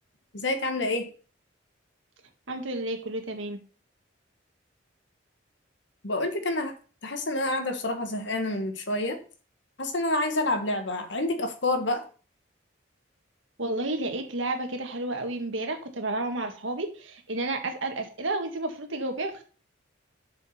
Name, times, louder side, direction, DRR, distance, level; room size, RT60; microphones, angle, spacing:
voice 1, 0.3-1.1 6.0-6.7 7.0-9.2 9.8-12.0, left 2 dB, 65° left, 7 dB, 1.5 m, -28 dB
voice 2, 2.5-3.6 13.6-19.4, right 2 dB, 80° right, 5 dB, 1.8 m, -31 dB
7.4 x 6.0 x 5.7 m, 0.39 s
head